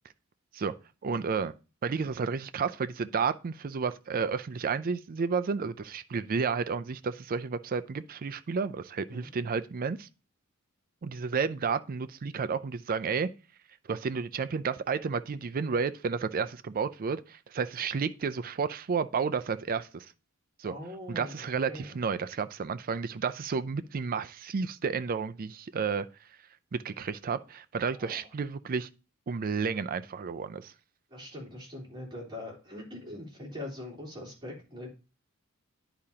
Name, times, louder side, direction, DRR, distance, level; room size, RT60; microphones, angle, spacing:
voice 1, 1.0-1.5 1.8-10.1 11.0-13.3 13.9-20.1 20.6-20.7 21.1-26.1 26.7-28.9 29.3-30.7, right 5 dB, 40° right, 0.4 m, -31 dB
voice 2, 20.6-22.0 27.9-28.3 31.1-34.9, left 1 dB, 20° right, 3.3 m, -42 dB
10.5 x 4.9 x 2.8 m
head